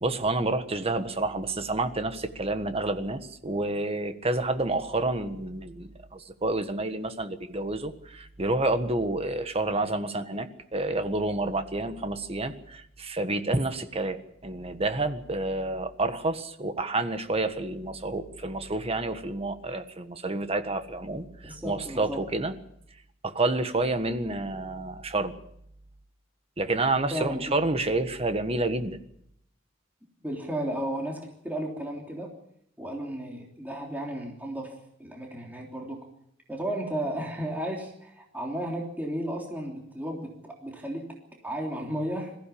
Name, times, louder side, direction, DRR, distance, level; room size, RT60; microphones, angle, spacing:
voice 1, 0.0-14.2 14.4-22.5 23.2-25.3 26.6-29.0, right 2 dB, 30° right, 9 dB, 1.5 m, -29 dB
voice 2, 21.4-22.2 27.1-27.6 30.2-32.3 32.8-36.0 36.5-41.1 41.4-42.4, right 1 dB, 10° right, 0 dB, 3.3 m, -34 dB
21.5 x 15.0 x 8.6 m, 0.74 s
head